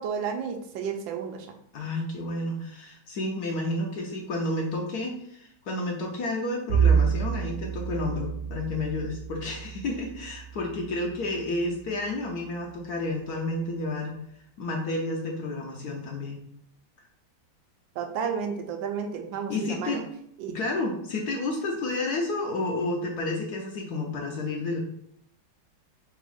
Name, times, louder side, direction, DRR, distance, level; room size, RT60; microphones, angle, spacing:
voice 1, 0.0-1.5 18.0-20.0 20.4-20.6, right 6 dB, 75° right, 5 dB, 1.3 m, -32 dB
voice 2, 1.7-14.2 14.6-16.4 19.5-20.0 20.5-24.8, left 2 dB, 65° left, 0 dB, 1.1 m, -31 dB
Bowed string instrument, 6.7-11.3, right 7 dB, 50° right, 0.9 m, -28 dB
3.6 x 3.0 x 4.8 m, 0.70 s
omnidirectional pair, 2.2 m